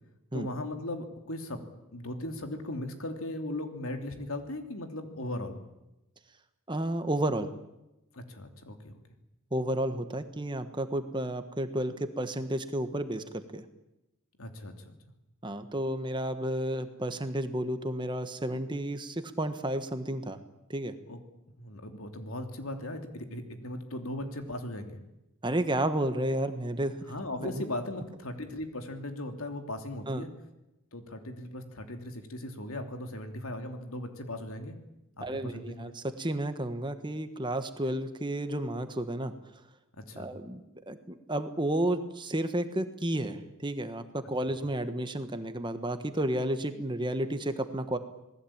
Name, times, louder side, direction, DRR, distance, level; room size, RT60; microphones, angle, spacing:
voice 1, 0.3-1.6 1.9-5.6 8.1-9.0 14.4-14.9 21.1-21.2 21.6-25.0 27.1-30.3 30.9-34.8 35.2-35.9 40.0-40.3, left 1 dB, 70° left, 6 dB, 3.1 m, -38 dB
voice 2, 6.7-7.5 9.5-13.6 15.4-20.4 20.7-20.9 25.4-27.0 27.4-27.6 30.1-30.2 35.2-39.3 40.2-48.0, right 1 dB, 20° right, 9 dB, 1.4 m, -32 dB
27.0 x 19.5 x 8.8 m, 0.92 s
head